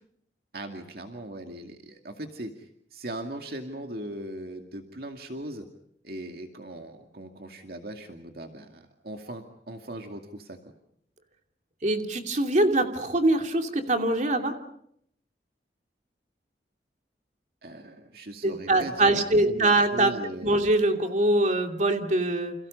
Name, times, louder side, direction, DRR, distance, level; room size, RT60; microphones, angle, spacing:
voice 1, 0.5-5.7 6.0-10.6 17.6-20.6, right 1 dB, 60° right, 4 dB, 2.3 m, -39 dB
voice 2, 11.8-14.6 18.4-20.1 20.4-22.5, right 2 dB, 45° right, 4 dB, 2.7 m, -23 dB
30.0 x 28.5 x 5.4 m, 0.71 s
head